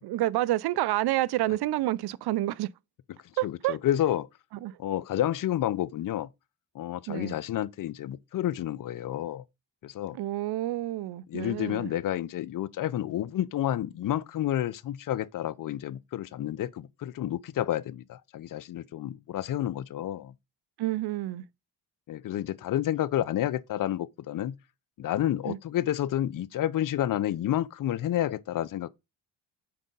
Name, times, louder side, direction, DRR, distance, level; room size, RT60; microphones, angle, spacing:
voice 1, 0.0-2.7 3.4-3.8 4.6-4.8 7.1-7.4 10.1-11.9 20.8-21.4 25.5-25.6, right 16 dB, 55° right, 0.5 m, -29 dB
voice 2, 3.4-4.3 4.8-6.3 6.7-9.4 9.8-10.2 11.3-20.3 22.1-24.6 25.0-28.9, left 12 dB, 40° left, 0.5 m, -30 dB
4.8 x 3.8 x 5.3 m
hypercardioid pair, 50°, 50 cm